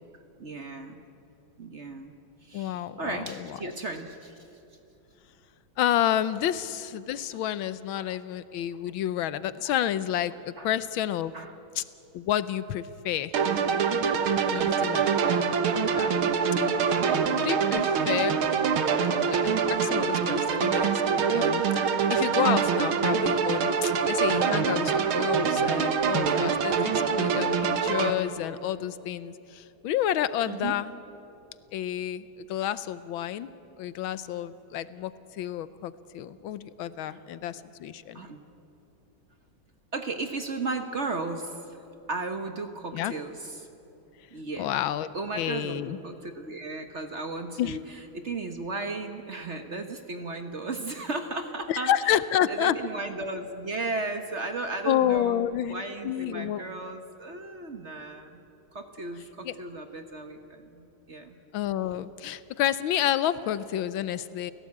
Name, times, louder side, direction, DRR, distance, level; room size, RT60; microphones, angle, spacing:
voice 1, 0.4-1.0 1.6-2.1 2.4-4.4 8.1-8.2 9.6-9.7 10.6-10.7 11.3-11.5 14.5-15.0 16.8-17.2 30.5-30.8 37.1-37.2 38.1-38.4 39.9-41.6 42.1-43.7 44.3-44.7 45.1-47.8 48.1-51.9 52.5-58.4 58.7-61.4, right 3 dB, 40° right, 7 dB, 1.2 m, -35 dB
voice 2, 2.5-3.7 5.8-11.3 11.8-11.9 12.1-13.3 14.5-15.4 15.9-16.1 17.3-18.4 19.2-21.7 22.1-30.9 31.7-33.5 33.8-38.2 42.9-43.1 44.6-45.1 45.4-46.0 47.6-47.8 51.7-52.8 54.8-56.6 59.4-59.5 61.5-64.5, left 11 dB, 80° left, 15 dB, 1.5 m, -30 dB
sound 1, 13.3-28.1, right 6 dB, 90° right, 2.1 m, -25 dB
29.5 x 16.5 x 8.6 m, 2.9 s
omnidirectional pair, 2.3 m